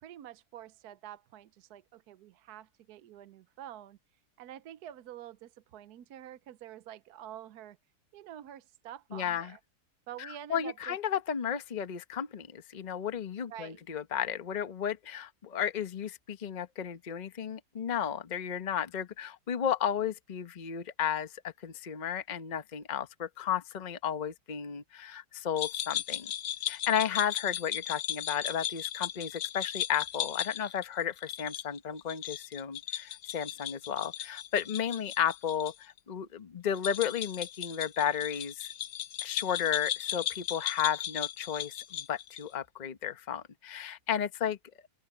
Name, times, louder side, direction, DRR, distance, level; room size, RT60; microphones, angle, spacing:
voice 1, 0.0-4.0 4.4-7.8 8.1-9.6 10.1-11.0 13.4-13.8, right 11 dB, 75° right, 1.2 m, -47 dB
voice 2, 9.1-9.5 10.2-26.3 26.7-38.7 39.2-44.6, left 8 dB, 35° left, 0.9 m, -33 dB
sound 1, 25.6-35.7 36.0-36.1 36.7-42.5, left 11 dB, 60° left, 0.8 m, -37 dB
open air
omnidirectional pair, 1.8 m